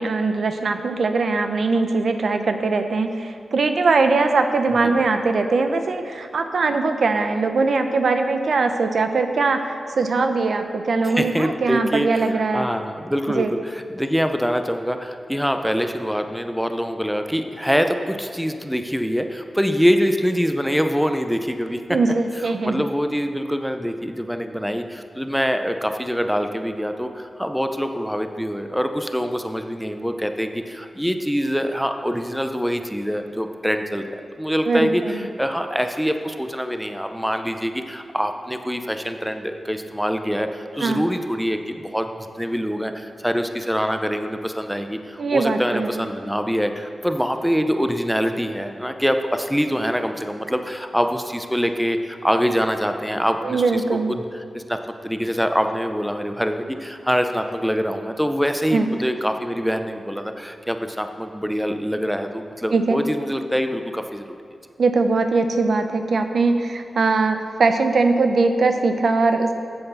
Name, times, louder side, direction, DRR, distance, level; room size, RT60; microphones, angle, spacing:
voice 1, 0.0-12.7 13.3-13.5 21.9-22.8 34.7-35.2 40.8-41.0 45.2-46.1 53.4-54.1 58.7-58.9 62.7-63.0 64.8-69.5, right 3 dB, 70° right, 7 dB, 0.7 m, -21 dB
voice 2, 11.0-21.8 22.6-42.1 42.4-53.8 54.1-54.2 54.5-54.8 55.0-64.4, equal, ahead, 6 dB, 0.6 m, -24 dB
8.0 x 7.8 x 6.9 m, 2.3 s
wide cardioid pair, 80°, 0 cm